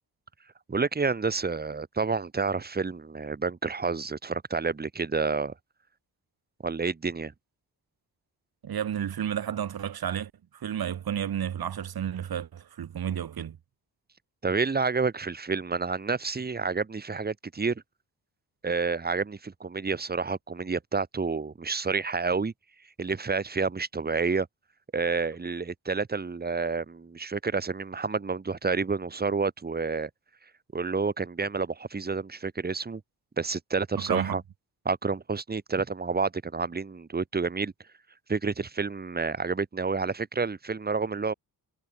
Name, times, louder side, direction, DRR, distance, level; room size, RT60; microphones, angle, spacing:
voice 1, 0.7-5.5 6.6-7.3 14.4-17.8 18.6-22.5 23.0-24.5 24.9-30.1 30.7-33.0 33.4-34.4 34.8-37.7 38.3-41.3, right 4 dB, 25° right, 3.2 m, -29 dB
voice 2, 8.6-13.6 34.0-34.4, right 9 dB, 75° right, 5.3 m, -32 dB
wide cardioid pair, 180°, 37 cm